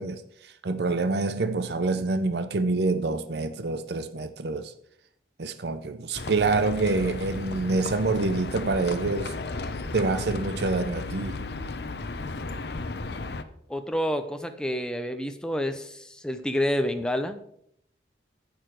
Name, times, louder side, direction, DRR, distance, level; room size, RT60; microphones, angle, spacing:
voice 1, 0.0-4.7 5.4-9.4 9.9-11.5, right 3 dB, 60° right, 0.6 m, -27 dB
Livestock farm animals working animals, 6.1-13.4, left 3 dB, 60° left, 0.7 m, -34 dB
voice 2, 13.7-17.4, equal, 5° left, 0.7 m, -28 dB
11.0 x 8.1 x 4.8 m
head